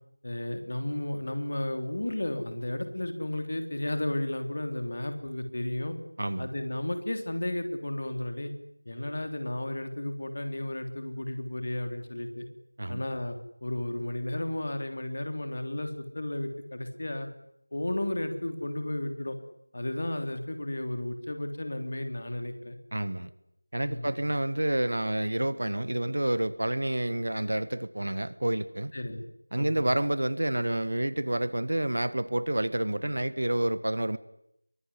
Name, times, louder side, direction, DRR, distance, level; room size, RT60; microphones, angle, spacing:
voice 1, 0.2-6.0 6.4-8.5 8.8-12.5 12.9-17.3 17.7-19.4 19.7-22.8 23.8-24.1 28.9-29.2 29.6-29.9, left 1 dB, 40° left, 7 dB, 3.4 m, -33 dB
voice 2, 22.9-23.3 23.7-28.9 29.5-34.2, right 1 dB, 55° right, 15 dB, 1.5 m, -29 dB
23.5 x 22.0 x 9.9 m, 0.77 s
figure-of-eight pair, 170°, 0 cm